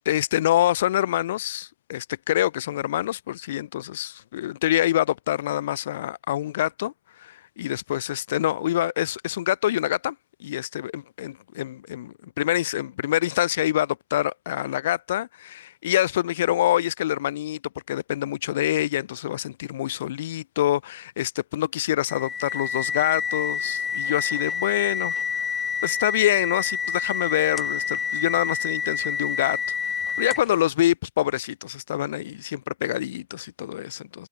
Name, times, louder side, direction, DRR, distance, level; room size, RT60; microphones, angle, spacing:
voice 1, 0.0-6.9 7.2-17.6 17.9-25.1 25.8-34.3, left 13 dB, 60° left, 2.5 m, -26 dB
sound 1, 22.1-30.6, left 6 dB, 15° left, 0.4 m, -28 dB
hypercardioid pair, 125°, 0 cm